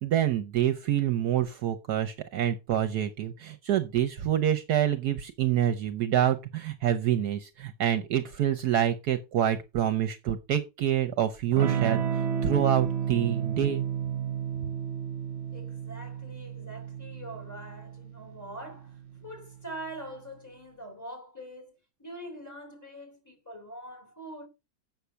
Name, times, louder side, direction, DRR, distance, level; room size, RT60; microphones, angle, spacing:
voice 1, 0.0-13.8, right 10 dB, 65° right, 1.3 m, -27 dB
Electric guitar / Strum, 11.5-19.8, right 8 dB, 40° right, 1.3 m, -32 dB
voice 2, 15.5-21.7 22.0-24.5, right 1 dB, 10° left, 3.3 m, -43 dB
8.2 x 6.5 x 5.7 m
omnidirectional pair, 1.9 m